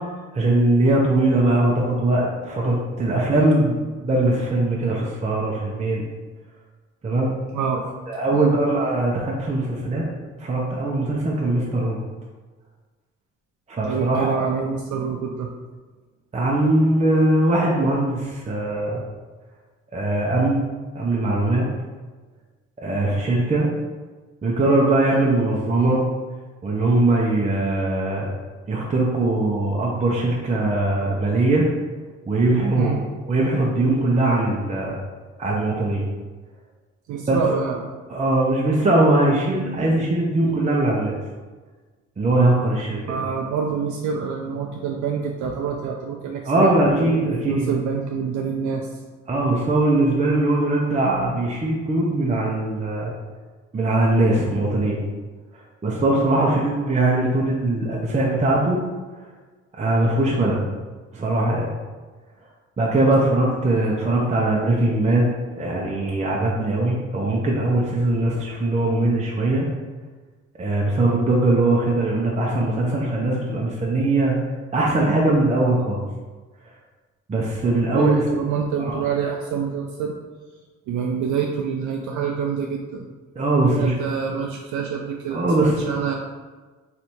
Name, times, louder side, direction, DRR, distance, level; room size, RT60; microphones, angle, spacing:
voice 1, 0.3-6.0 7.0-7.3 8.1-10.0 10.4-12.0 13.7-14.5 16.3-19.0 19.9-20.6 20.9-21.6 22.8-23.7 24.4-26.0 26.6-28.3 28.7-31.6 32.3-33.0 33.3-34.9 35.4-36.0 37.3-37.4 38.1-41.2 42.2-43.2 46.5-47.7 49.3-53.1 53.7-55.0 55.8-58.8 59.8-60.6 61.1-61.7 62.8-65.3 65.6-69.7 70.6-74.4 74.7-76.0 77.3-78.1 78.8-79.0 83.4-83.9 84.3-84.4 85.3-85.9, right 2 dB, 25° right, -3 dB, 0.7 m, -21 dB
voice 2, 13.8-15.5 32.7-33.0 37.1-37.8 43.1-46.7 47.0-48.9 63.1-63.2 77.8-80.2 80.9-83.1 83.7-86.1, right 6 dB, 75° right, 1 dB, 0.5 m, -26 dB
3.3 x 2.7 x 4.4 m, 1.3 s
cardioid pair, 90°, 30 cm